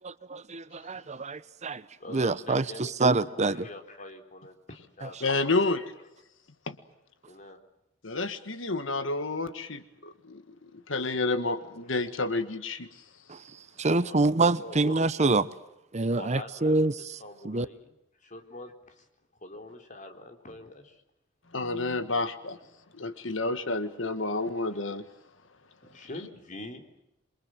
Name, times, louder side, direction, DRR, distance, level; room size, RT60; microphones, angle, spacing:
voice 1, 0.0-1.8 2.1-3.7 13.3-13.4 13.8-15.5 15.9-16.9 17.4-17.7, right 3 dB, 35° right, 0.9 m, -26 dB
voice 2, 2.0-5.7 7.3-7.6 14.0-15.0 16.2-16.9 17.2-17.9 18.2-19.1 19.4-21.0 25.8-26.8, left 2 dB, 40° left, 3.9 m, -44 dB
voice 3, 5.2-5.9 6.7-6.8 8.0-12.9 21.5-22.6 22.9-25.0, left 3 dB, 75° left, 1.6 m, -30 dB
27.5 x 24.0 x 7.8 m
head